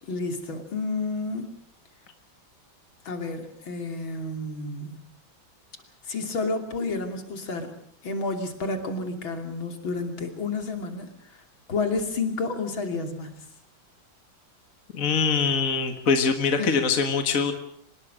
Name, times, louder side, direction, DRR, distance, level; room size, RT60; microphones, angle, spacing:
voice 1, 0.0-1.5 3.1-5.0 6.0-7.7 8.0-11.4 11.7-13.5 16.6-16.7, left 3 dB, 85° left, 5 dB, 3.6 m, -30 dB
voice 2, 14.9-17.5, left 5 dB, 45° left, 6 dB, 2.0 m, -23 dB
24.5 x 20.5 x 6.5 m, 0.64 s
omnidirectional pair, 2.1 m